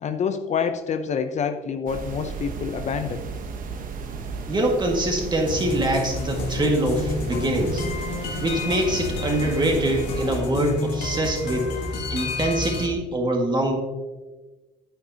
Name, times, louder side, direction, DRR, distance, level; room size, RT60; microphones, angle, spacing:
voice 1, 0.0-3.2, left 6 dB, 45° left, 8 dB, 0.6 m, -27 dB
sound 1, 1.9-10.4, right 5 dB, 55° right, 0.9 m, -34 dB
voice 2, 4.5-7.9 8.4-11.7 12.1-13.8, right 1 dB, 25° right, 1 dB, 1.9 m, -24 dB
sound 2, 5.5-12.9, left 3 dB, 75° left, 1.6 m, -30 dB
9.0 x 9.0 x 2.9 m, 1.2 s
cardioid pair, 110°, 17 cm